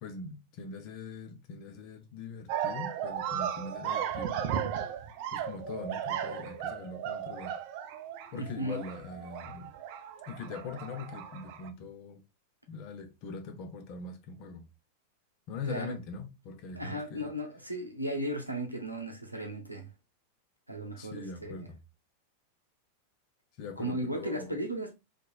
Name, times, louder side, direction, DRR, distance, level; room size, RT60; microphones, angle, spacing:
voice 1, 0.0-4.3 4.9-5.0 5.3-7.6 8.3-9.7 10.3-12.2 12.7-14.7 15.5-17.3 21.0-21.8 23.6-24.6, left 4 dB, 40° left, 0.7 m, -42 dB
sound 1, 2.5-11.7, right 9 dB, 45° right, 0.4 m, -36 dB
voice 2, 8.3-8.8 15.7-15.9 16.7-19.9 20.7-21.6 23.8-25.0, right 1 dB, 85° right, 0.6 m, -35 dB
2.9 x 2.5 x 2.3 m
figure-of-eight pair, 90°, 0 cm